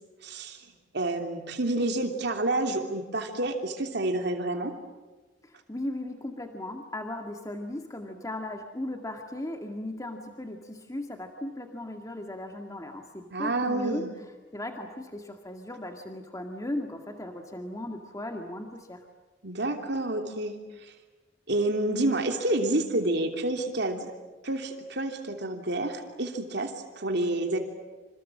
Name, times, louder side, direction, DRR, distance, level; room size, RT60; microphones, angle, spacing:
voice 1, 0.2-0.7 0.9-4.7 13.3-14.1 19.4-20.9 21.5-24.1 24.4-27.6, right 2 dB, 65° right, 4 dB, 3.1 m, -29 dB
voice 2, 5.4-14.0 14.5-19.0, left 1 dB, 20° left, 4 dB, 2.0 m, -37 dB
27.5 x 27.5 x 7.5 m, 1.3 s
head